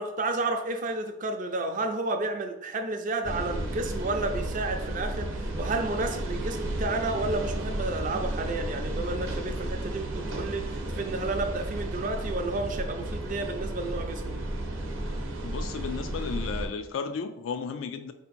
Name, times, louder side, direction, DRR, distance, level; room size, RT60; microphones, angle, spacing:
voice 1, 0.0-14.4, right 2 dB, 40° right, 5 dB, 0.5 m, -31 dB
sound 1, 3.2-16.7, right 1 dB, 75° right, 0.7 m, -33 dB
voice 2, 15.4-18.1, left 5 dB, 75° left, 9 dB, 0.3 m, -34 dB
4.4 x 2.8 x 4.2 m, 0.86 s
head